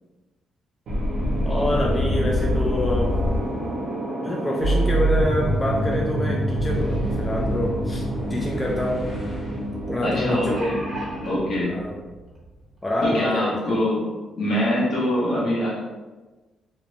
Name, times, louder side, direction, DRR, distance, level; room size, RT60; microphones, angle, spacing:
sound 1, 0.9-11.3, equal, 75° right, 0.7 m, -25 dB
voice 1, 1.4-3.2 4.2-8.0 8.3-9.1 9.9-10.8 11.6-12.0 12.8-13.8, left 1 dB, 20° left, -2 dB, 0.3 m, -26 dB
Boom, 6.5-13.1, right 2 dB, 40° left, 1.0 m, -34 dB
voice 2, 10.0-10.8 11.2-11.7 13.0-14.1 14.4-15.8, left 1 dB, 70° left, -5 dB, 1.0 m, -23 dB
sound 2, 10.4-11.3 12.3-12.4 12.8-12.9, right 1 dB, 30° right, 0.8 m, -35 dB
2.7 x 2.1 x 2.7 m, 1.2 s
cardioid pair, 120°, 0 cm